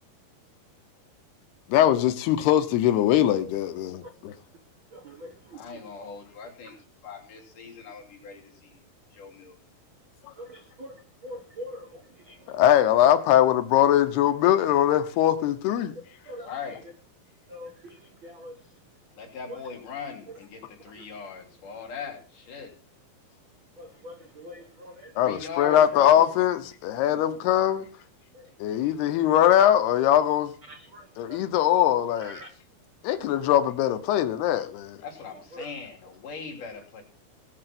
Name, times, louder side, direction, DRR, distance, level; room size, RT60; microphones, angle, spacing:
voice 1, 1.7-4.3 12.5-15.9 25.2-27.9 28.6-30.5 31.2-32.4 33.0-35.0, left 11 dB, 85° left, 3.0 m, -21 dB
voice 2, 4.9-5.6 10.4-11.0 11.2-12.4 16.3-16.5 17.5-18.0 18.2-18.5 19.5-19.6 23.8-25.1 28.3-28.4 30.7-31.4 32.2-32.5 35.5-35.6, equal, 65° right, 1.2 m, -43 dB
voice 3, 5.5-6.8 7.0-8.8 9.1-9.6 12.2-12.7 16.4-16.8 19.2-22.7 25.2-26.3 27.1-27.3 35.0-37.0, left 6 dB, 55° left, 4.6 m, -39 dB
19.0 x 6.6 x 6.0 m
omnidirectional pair, 4.5 m